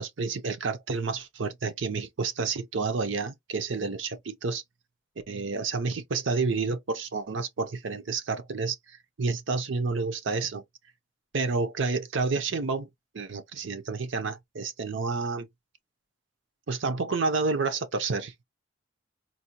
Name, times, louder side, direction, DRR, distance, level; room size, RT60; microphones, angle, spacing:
voice 1, 0.0-4.6 5.3-10.6 11.3-12.9 13.1-15.5 16.7-18.3, right 4 dB, 85° right, 0.7 m, -30 dB
4.1 x 2.2 x 2.8 m
head